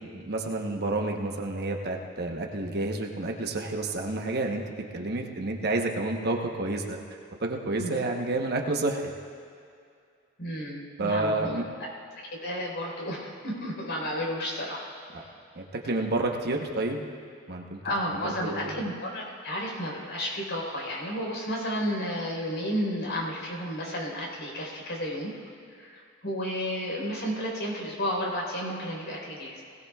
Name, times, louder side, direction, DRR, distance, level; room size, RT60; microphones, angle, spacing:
voice 1, 0.1-4.6 4.9-7.0 7.4-9.1 11.0-11.6 15.1-15.2 15.5-17.0 17.5-17.8 18.4-18.8, right 2 dB, 50° right, 2 dB, 1.1 m, -29 dB
voice 2, 10.4-11.6 12.4-14.9 17.8-25.3 25.7-29.6, equal, 60° left, -2 dB, 4.2 m, -32 dB
20.0 x 17.5 x 2.4 m, 2.3 s
head